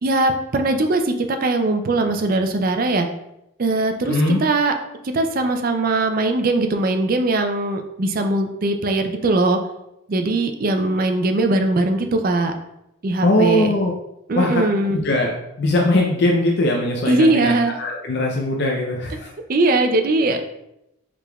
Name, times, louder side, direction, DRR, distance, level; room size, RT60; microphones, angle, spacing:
voice 1, 0.0-3.1 3.6-4.2 4.4-4.7 5.1-9.6 10.1-12.5 13.0-13.7 14.3-15.0 17.1-17.7 19.5-20.4, right 2 dB, 40° right, 6 dB, 0.4 m, -20 dB
voice 2, 4.1-4.4 13.2-13.9 14.4-15.3 15.6-19.3, left 1 dB, 50° left, 0 dB, 0.4 m, -20 dB
4.8 x 3.5 x 2.2 m, 0.85 s
head